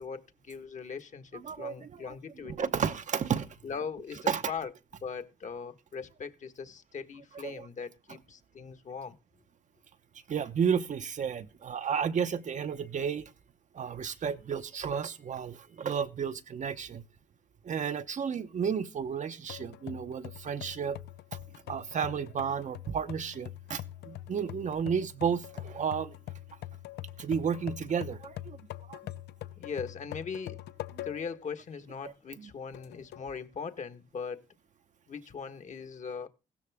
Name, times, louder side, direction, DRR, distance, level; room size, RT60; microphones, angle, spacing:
voice 1, 0.0-2.7 3.6-4.7 5.0-9.1 29.6-30.6 31.0-34.4 35.1-36.3, left 6 dB, 45° left, 1.5 m, -40 dB
voice 2, 1.3-2.1 2.4-3.6 4.3-4.5 7.4-7.7 10.3-13.3 13.7-17.0 17.6-21.0 21.3-21.4 21.7-26.2 27.2-28.6 28.9-29.0 32.0-32.5, right 7 dB, 45° right, 0.9 m, -32 dB
sound 1, 19.5-31.4 31.9-32.0 32.7-33.3, left 14 dB, 85° left, 0.6 m, -44 dB
15.5 x 13.0 x 3.6 m
cardioid pair, 100°, 17 cm